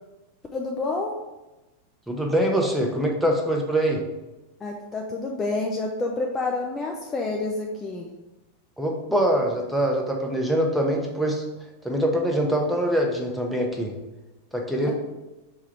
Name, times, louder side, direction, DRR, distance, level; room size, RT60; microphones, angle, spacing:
voice 1, 0.5-1.1 4.6-8.1, left 3 dB, 20° left, 1 dB, 0.4 m, -28 dB
voice 2, 2.1-4.0 8.8-11.4 11.8-13.9 14.5-14.9, right 1 dB, 5° right, 0 dB, 0.7 m, -24 dB
4.7 x 2.3 x 4.3 m, 1.0 s
figure-of-eight pair, 90°, 0 cm